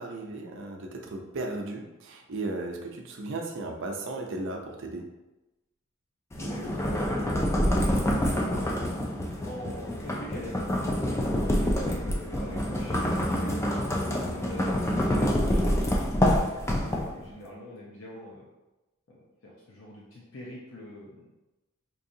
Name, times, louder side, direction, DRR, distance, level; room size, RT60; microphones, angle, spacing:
voice 1, 0.0-5.1, right 2 dB, 60° right, 2 dB, 0.5 m, -35 dB
voice 2, 6.3-8.5 9.4-10.5 11.1-13.8 14.2-18.4 19.1-21.3, left 1 dB, 65° left, -4 dB, 0.7 m, -43 dB
sound 1, 6.3-17.3, equal, 15° left, 0.3 m, -27 dB
4.6 x 2.7 x 2.6 m, 1.0 s
head